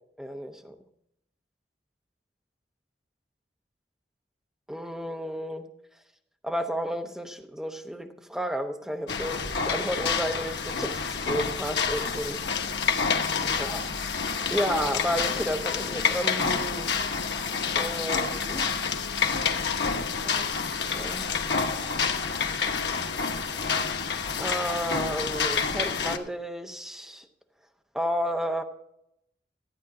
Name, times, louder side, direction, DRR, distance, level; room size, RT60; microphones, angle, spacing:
voice 1, 0.2-0.8 4.7-5.7 6.4-12.4 13.2-13.8 14.2-17.1 17.7-18.7 19.8-20.5 20.9-21.3 23.7-23.8 24.4-27.3 27.9-28.6, equal, 5° right, 0.8 m, -32 dB
sound 1, 9.1-26.2, left 5 dB, 85° left, 1.1 m, -28 dB
14.0 x 8.9 x 4.8 m
head